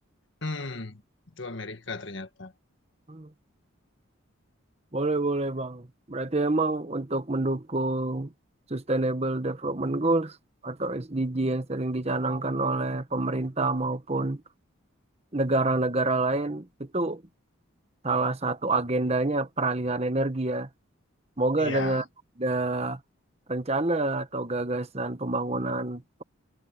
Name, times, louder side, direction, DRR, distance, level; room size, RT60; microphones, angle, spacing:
voice 1, 0.4-1.0 1.4-2.5 21.6-22.0, left 3 dB, 60° left, 1.7 m, -35 dB
voice 2, 4.9-8.3 8.7-10.4 10.6-14.4 15.3-17.2 18.0-20.7 21.4-22.0 22.4-23.0 23.5-26.2, right 2 dB, 30° right, 1.2 m, -27 dB
head